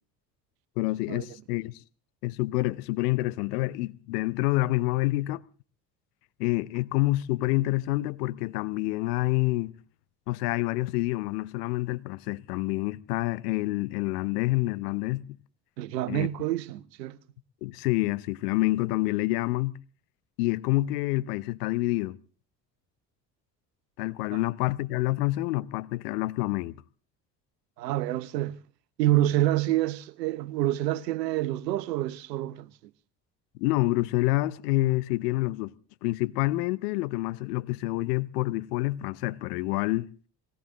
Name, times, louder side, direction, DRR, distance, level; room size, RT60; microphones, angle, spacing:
voice 1, 0.8-1.7 2.2-5.4 6.4-9.8 10.3-15.2 16.1-16.3 17.6-19.7 20.4-22.2 24.0-26.8 33.6-35.7 36.0-40.1, left 19 dB, 70° left, 0.8 m, -27 dB
voice 2, 15.8-17.2 24.3-24.4 27.8-28.6 29.0-32.7, right 15 dB, 80° right, 0.9 m, -27 dB
20.5 x 17.5 x 3.8 m
figure-of-eight pair, 55°, 49 cm